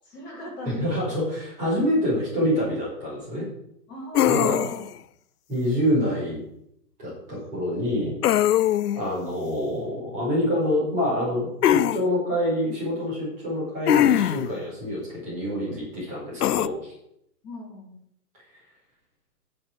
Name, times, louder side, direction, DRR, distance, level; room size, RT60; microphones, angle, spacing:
voice 1, 0.0-1.0 3.9-4.8 17.4-18.0, left 1 dB, 15° left, -5 dB, 3.7 m, -38 dB
voice 2, 0.6-3.5 4.3-4.6 5.5-6.4 7.0-8.1 8.9-16.9, equal, 15° right, -6 dB, 4.9 m, -26 dB
sound 1, 4.2-4.9 8.2-9.0 11.6-12.0 13.9-14.5 16.4-16.7, left 12 dB, 70° left, 0.6 m, -21 dB
10.0 x 7.3 x 6.3 m, 0.75 s
hypercardioid pair, 170°, 47 cm